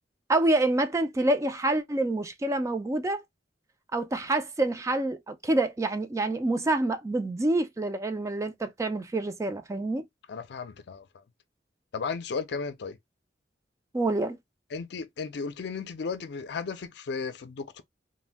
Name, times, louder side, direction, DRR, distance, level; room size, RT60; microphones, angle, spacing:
voice 1, 0.3-3.2 3.9-10.0 13.9-14.4, right 2 dB, 15° right, 0.3 m, -27 dB
voice 2, 10.3-11.2 11.9-13.0 14.7-17.8, left 5 dB, 65° left, 0.4 m, -35 dB
2.5 x 2.1 x 3.3 m
head